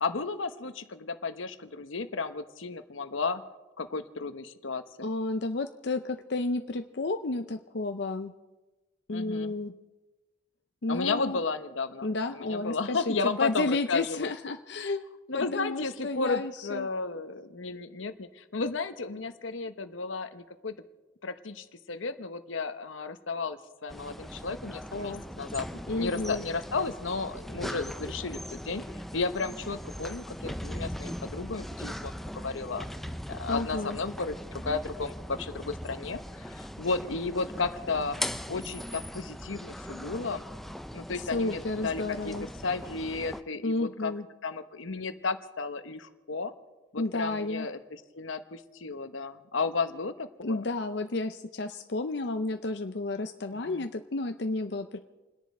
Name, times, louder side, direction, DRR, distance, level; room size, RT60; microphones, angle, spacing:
voice 1, 0.0-3.4 3.8-5.1 9.1-9.5 10.9-14.3 14.8-14.9 15.3-20.7 21.2-25.7 25.9-28.8 29.1-38.2 38.5-40.4 40.9-44.1 44.4-46.5 46.9-50.6 53.5-53.9, left 4 dB, 85° left, 9 dB, 1.0 m, -33 dB
voice 2, 5.0-8.3 9.1-9.7 10.8-11.4 12.0-15.0 15.3-16.9 24.9-25.2 25.9-26.4 33.5-34.0 41.3-42.5 43.6-44.2 47.0-47.7 50.4-55.0, left 2 dB, 60° left, 7 dB, 0.6 m, -31 dB
sound 1, 23.9-43.4, equal, ahead, 0.4 m, -40 dB
29.5 x 10.5 x 4.3 m, 1.1 s
head